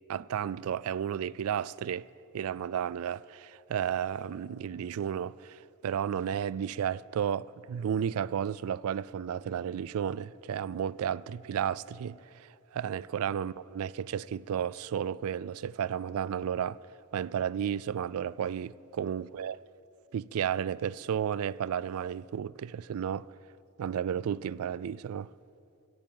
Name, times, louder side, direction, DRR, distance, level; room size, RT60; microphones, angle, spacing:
voice 1, 0.1-2.1 2.3-16.8 17.1-19.6 20.1-23.3 23.8-25.3, right 8 dB, 70° right, 0.3 m, -33 dB
16.5 x 8.7 x 7.8 m
head